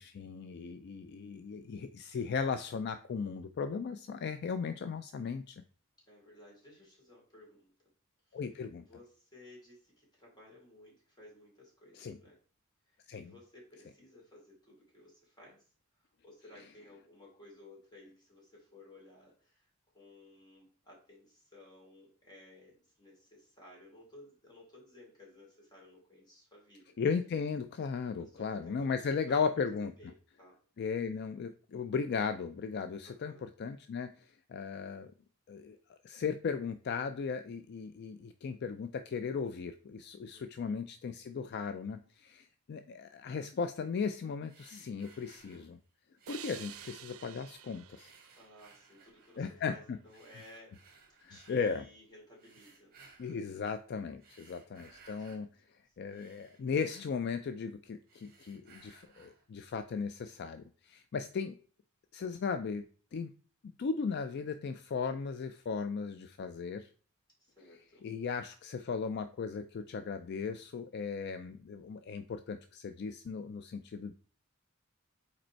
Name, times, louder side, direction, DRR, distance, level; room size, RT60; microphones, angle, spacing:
voice 1, 0.0-5.6 8.3-8.8 11.9-12.2 13.1-13.3 27.0-29.9 30.8-35.1 35.5-45.8 46.3-48.1 49.4-50.0 51.2-51.9 53.2-55.5 56.0-61.6 62.1-62.9 63.1-63.3 63.8-66.9 68.0-74.1, left 5 dB, 55° left, 10 dB, 0.4 m, -36 dB
voice 2, 6.1-7.7 8.2-12.4 12.8-15.7 16.0-27.0 28.2-29.7 30.0-30.6 33.0-33.4 40.3-40.7 48.3-50.8 51.3-52.9 54.5-55.4 55.9-56.0 67.4-68.1, left 1 dB, 20° left, -3 dB, 2.9 m, -57 dB
sound 1, 44.5-45.8 46.2-47.6 47.9-49.5 50.1-51.7 52.4-53.5 54.1-55.5 55.9-57.7 58.0-59.5, right 4 dB, 45° right, 1.5 m, -61 dB
sound 2, 46.3-49.6, right 11 dB, 90° right, 0.5 m, -51 dB
5.1 x 4.2 x 4.4 m, 0.41 s
head